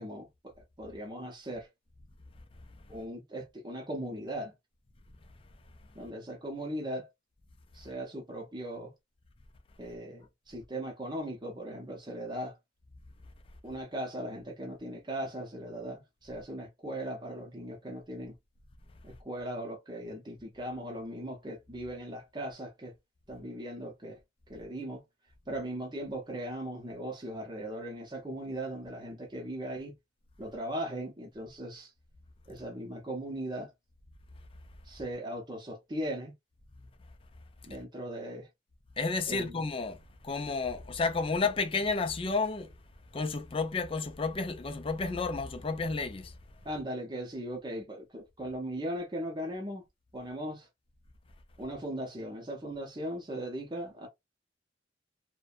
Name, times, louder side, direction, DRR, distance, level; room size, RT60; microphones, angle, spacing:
voice 1, 0.0-1.7 2.9-4.5 5.9-7.1 7.7-8.9 9.8-12.6 13.6-18.3 19.0-22.9 23.3-24.2 24.5-25.0 25.5-29.9 30.4-31.9 32.5-33.7 34.8-36.3 37.6-38.5 39.3-39.6 46.6-49.8 50.1-50.7 51.6-54.1, right 1 dB, 25° right, 0.7 m, -38 dB
voice 2, 39.0-40.0 40.2-42.7 43.1-46.3, left 4 dB, 30° left, 0.4 m, -31 dB
2.6 x 2.1 x 2.4 m
head